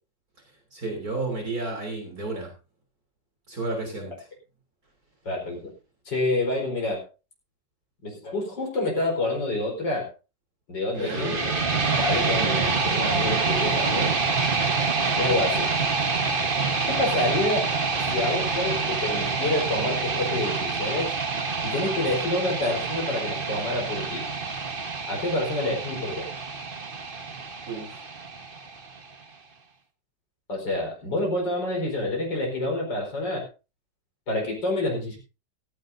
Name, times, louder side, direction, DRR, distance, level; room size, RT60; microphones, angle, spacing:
voice 1, 0.7-2.5 3.5-4.3 10.9-11.4 27.7-28.1, right 2 dB, 55° right, 1 dB, 3.9 m, -32 dB
voice 2, 5.3-5.7 6.1-7.0 8.0-10.1 10.7-11.5 12.0-14.1 15.2-15.7 16.8-17.7 18.0-21.1 21.6-24.3 25.1-26.3 30.5-33.5 34.3-35.2, left 2 dB, 85° left, -1 dB, 5.2 m, -28 dB
sound 1, 11.0-29.0, right 4 dB, 30° right, 1.4 m, -27 dB
16.0 x 16.0 x 2.7 m, 0.31 s
omnidirectional pair, 1.9 m